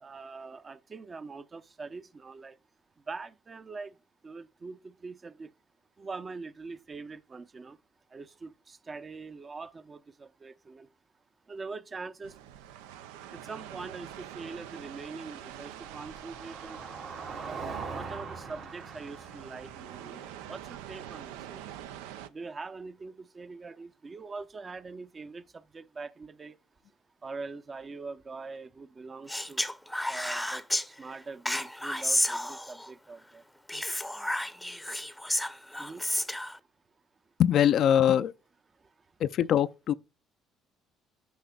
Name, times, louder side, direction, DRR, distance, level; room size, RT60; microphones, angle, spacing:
voice 1, 0.0-2.6 3.1-4.0 4.2-5.5 6.0-7.8 8.1-10.9 11.5-12.4 13.3-16.8 17.3-21.7 22.3-26.6 27.2-29.7 30.1-33.4 35.8-36.0 38.8-38.9, right 4 dB, 35° right, 0.7 m, -43 dB
sound 1, 12.2-22.3, right 11 dB, 85° right, 0.4 m, -46 dB
Car passing by, 13.9-21.9, right 5 dB, 70° right, 2.4 m, -43 dB
Speech, 29.3-30.9 31.5-32.9 33.7-36.6, left 1 dB, 5° left, 0.7 m, -31 dB
voice 2, 37.4-38.3 39.2-39.9, left 10 dB, 60° left, 0.4 m, -23 dB
10.5 x 5.5 x 2.3 m
supercardioid pair, 65°, 0 cm